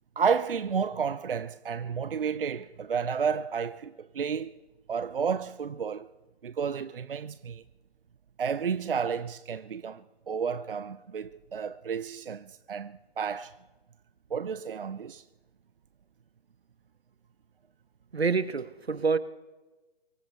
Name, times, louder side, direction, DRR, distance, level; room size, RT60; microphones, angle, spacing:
voice 1, 0.2-4.6 4.9-6.1 6.4-7.6 8.4-13.6 14.3-15.2, right 6 dB, 60° right, 0.5 m, -31 dB
voice 2, 18.1-19.2, right 5 dB, 80° right, 0.9 m, -27 dB
24.0 x 14.0 x 3.2 m
figure-of-eight pair, 145°, 31 cm